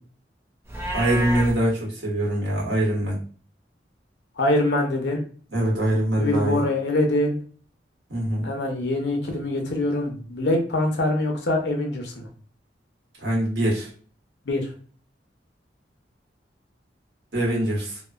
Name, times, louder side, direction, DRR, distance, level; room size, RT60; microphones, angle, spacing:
Livestock farm animals working animals, 0.6-1.5, right 1 dB, 15° right, 0.5 m, -28 dB
voice 1, 0.9-3.2 5.5-6.6 8.1-8.5 13.2-13.9 17.3-18.0, right 1 dB, 85° right, -4 dB, 1.3 m, -23 dB
voice 2, 4.4-5.2 6.2-7.4 8.4-12.3 14.5-14.7, left 1 dB, 75° left, 2 dB, 0.7 m, -24 dB
2.9 x 2.1 x 2.4 m, 0.42 s
head